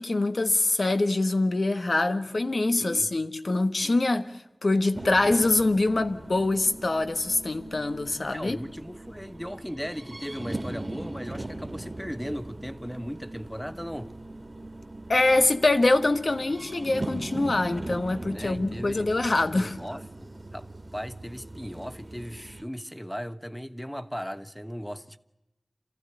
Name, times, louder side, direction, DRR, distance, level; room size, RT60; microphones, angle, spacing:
voice 1, 0.0-4.3 4.6-8.6 15.1-19.8, left 2 dB, 65° left, 1.4 m, -24 dB
sound 1, 4.9-22.6, right 2 dB, 35° right, 1.8 m, -40 dB
voice 2, 8.3-14.1 18.3-19.1 19.5-20.7 20.9-25.2, equal, 5° left, 1.1 m, -37 dB
27.5 x 15.5 x 9.8 m
wide cardioid pair, 60°, 0 cm